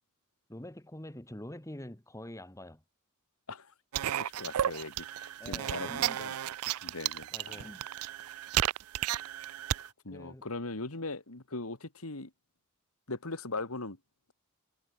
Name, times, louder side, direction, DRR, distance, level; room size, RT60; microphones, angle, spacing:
voice 1, 0.5-2.8 5.4-6.2 7.3-7.9 10.1-10.5, left 1 dB, 15° left, 1.8 m, -45 dB
sound 1, 3.9-9.9, right 11 dB, 85° right, 0.4 m, -33 dB
voice 2, 4.2-6.4 6.8-7.7 10.0-12.3 13.1-14.0, left 3 dB, 75° left, 2.4 m, -40 dB
head